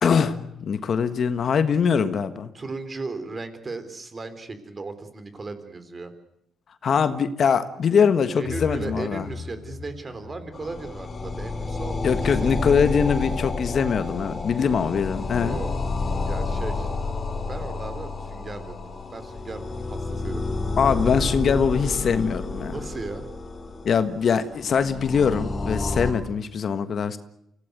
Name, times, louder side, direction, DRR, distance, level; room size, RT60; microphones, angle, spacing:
voice 1, 0.0-2.5 6.8-9.2 12.0-15.6 20.8-22.7 23.8-27.2, left 6 dB, 55° left, 11 dB, 1.5 m, -22 dB
voice 2, 2.5-6.1 8.4-12.5 15.4-15.7 16.3-16.9 17.5-18.8 19.1-20.4 22.7-23.3, right 3 dB, 30° right, 10 dB, 3.7 m, -36 dB
sound 1, 8.4-12.3, left 5 dB, 75° left, 4.0 m, -40 dB
sound 2, 10.5-26.1, left 3 dB, 35° left, 3.7 m, -30 dB
25.5 x 17.0 x 9.3 m, 0.80 s
cardioid pair, 90°, 0 cm